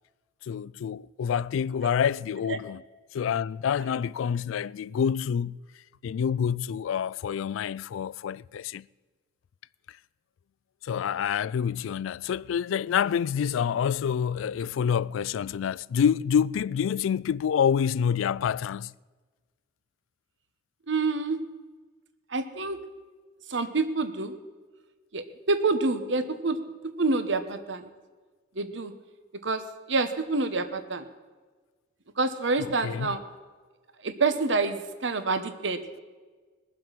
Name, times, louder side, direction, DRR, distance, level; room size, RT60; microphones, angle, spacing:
voice 1, 0.4-2.8 3.1-5.6 6.0-8.9 9.9-10.0 10.8-18.9 32.6-33.1, left 7 dB, 90° left, 0.3 m, -27 dB
voice 2, 20.9-21.4 22.3-22.8 23.5-24.3 25.1-26.6 27.0-27.9 28.5-28.9 29.4-31.1 32.2-33.2 34.0-35.8, right 3 dB, 70° right, 1.1 m, -27 dB
20.5 x 7.6 x 5.9 m
head